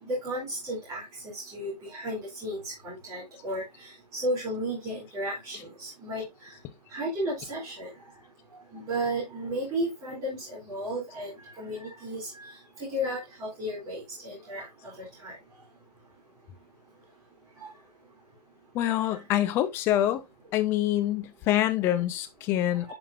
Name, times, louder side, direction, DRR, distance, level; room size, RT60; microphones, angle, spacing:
voice 1, 0.0-6.2 6.9-7.9 8.7-12.5 12.8-15.4 17.6-17.7 22.9-23.0, right 1 dB, 15° right, 2.7 m, -34 dB
voice 2, 18.7-20.2 20.5-22.9, left 13 dB, 10° left, 0.4 m, -26 dB
10.0 x 4.8 x 2.4 m
figure-of-eight pair, 140°, 21 cm